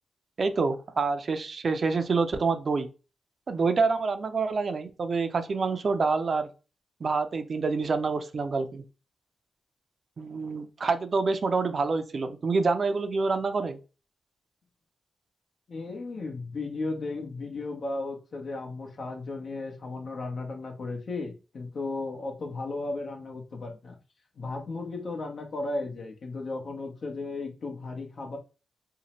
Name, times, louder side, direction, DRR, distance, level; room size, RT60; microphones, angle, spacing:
voice 1, 0.4-2.9 3.5-6.5 7.0-8.8 10.2-13.8, right 4 dB, 55° right, 0.4 m, -27 dB
voice 2, 15.7-24.0 24.4-28.4, left 3 dB, 65° left, 0.7 m, -35 dB
2.7 x 2.0 x 2.9 m
supercardioid pair, 50°, 0 cm